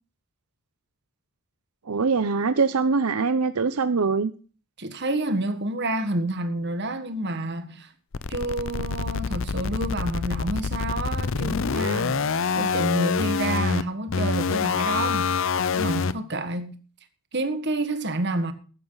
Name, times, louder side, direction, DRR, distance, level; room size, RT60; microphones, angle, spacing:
voice 1, 1.9-4.3, right 4 dB, 80° right, 0.7 m, -23 dB
voice 2, 4.8-7.9 8.3-12.3 12.5-15.3 15.7-16.7 17.3-18.5, right 1 dB, 50° right, 1.7 m, -29 dB
sound 1, 8.1-16.1, left 5 dB, 60° left, 0.6 m, -26 dB
15.0 x 12.0 x 4.0 m
head